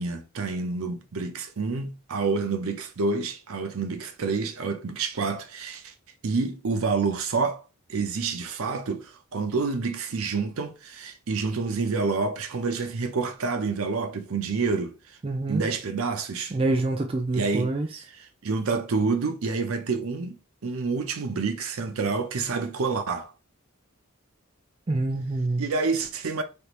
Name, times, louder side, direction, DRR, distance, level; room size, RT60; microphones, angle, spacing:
voice 1, 0.0-5.9 6.2-7.6 7.9-15.2 15.5-16.6 17.3-17.7 18.1-20.4 20.6-23.3 25.6-26.4, right 4 dB, 75° right, 0.6 m, -28 dB
voice 2, 15.2-15.7 16.5-17.9 24.9-25.6, right 2 dB, 25° right, 0.4 m, -26 dB
3.3 x 2.5 x 2.9 m
head